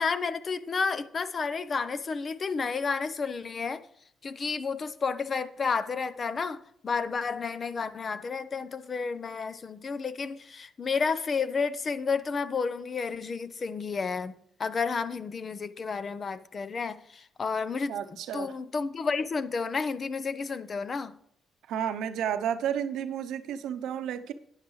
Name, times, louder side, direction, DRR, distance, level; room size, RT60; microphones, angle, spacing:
voice 1, 0.0-3.8 4.2-21.1, left 5 dB, 40° left, 0.6 m, -31 dB
voice 2, 17.9-18.5 21.7-24.3, right 9 dB, 80° right, 0.7 m, -31 dB
11.5 x 9.8 x 3.2 m
cardioid pair, 90°, 0 cm